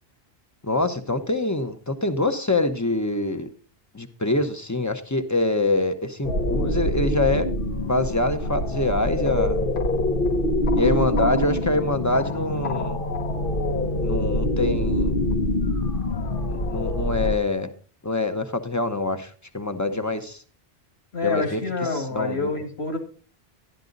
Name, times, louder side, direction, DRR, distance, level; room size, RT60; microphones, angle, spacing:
voice 1, 0.6-3.5 3.9-7.5 7.8-9.6 10.7-13.0 14.0-15.2 16.5-17.7 18.0-20.4 21.2-21.6 21.9-22.5, left 2 dB, 20° left, 9 dB, 0.8 m, -25 dB
sound 1, 6.2-17.4, left 1 dB, 60° left, 1.1 m, -25 dB
voice 2, 21.1-23.0, left 3 dB, 85° left, 4 dB, 2.5 m, -27 dB
12.0 x 11.0 x 3.9 m, 0.39 s
omnidirectional pair, 1.0 m